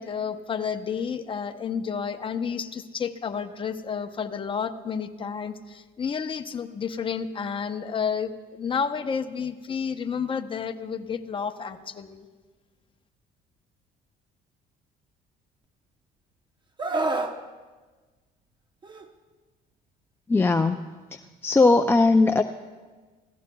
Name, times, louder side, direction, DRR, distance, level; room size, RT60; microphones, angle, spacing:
voice 1, 0.0-12.3, left 6 dB, 30° left, 7 dB, 0.8 m, -31 dB
Screaming, 16.8-17.4 18.8-19.1, right 2 dB, 30° right, 0.9 m, -27 dB
voice 2, 20.3-20.8 21.4-22.4, left 3 dB, 15° left, 5 dB, 0.4 m, -18 dB
26.0 x 15.5 x 2.3 m, 1.4 s
cardioid pair, 110°, 17 cm